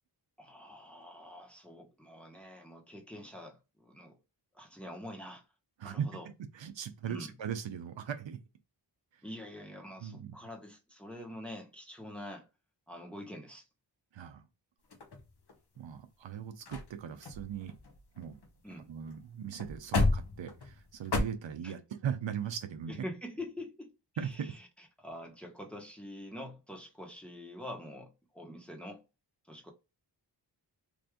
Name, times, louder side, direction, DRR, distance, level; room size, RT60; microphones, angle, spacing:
voice 1, 0.4-4.2 4.5-5.4 5.8-6.3 7.0-7.3 9.2-12.5 12.9-13.7 18.6-18.9 21.6-21.7 22.9-29.0 29.5-29.7, left 1 dB, 5° left, 1.1 m, -46 dB
voice 2, 5.8-6.2 6.5-8.4 10.0-10.3 14.1-14.4 15.8-17.7 18.2-18.4 18.9-23.0 24.2-24.5, right 8 dB, 85° right, 0.7 m, -39 dB
sound 1, 14.9-15.8 16.3-16.4 16.7-16.9 17.2-18.8 19.1-19.2 19.5-21.2, left 3 dB, 60° left, 1.0 m, -33 dB
3.5 x 2.6 x 3.5 m
wide cardioid pair, 70°, 44 cm